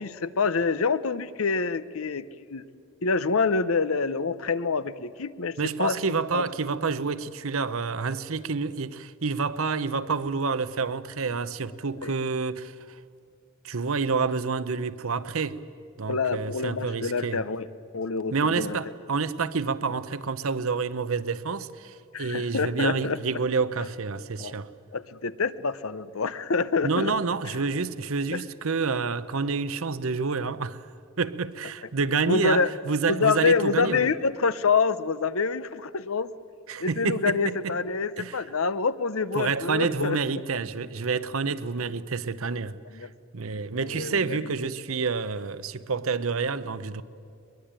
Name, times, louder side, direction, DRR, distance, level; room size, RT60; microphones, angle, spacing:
voice 1, 0.0-2.2 2.5-2.6 3.0-6.0 6.3-6.4 12.0-12.1 16.1-17.7 17.9-18.8 22.1-23.2 24.4-24.6 24.9-27.1 28.3-28.4 32.3-32.7 33.1-36.3 36.8-40.4 42.9-43.1 43.8-44.5, left 4 dB, 70° left, 0.8 m, -26 dB
voice 2, 5.6-12.7 13.6-15.6 16.0-17.4 18.3-24.7 26.8-30.9 31.2-34.1 36.7-37.8 38.2-38.4 39.3-42.8 43.3-47.0, right 4 dB, 70° right, 0.8 m, -28 dB
22.0 x 22.0 x 8.9 m
head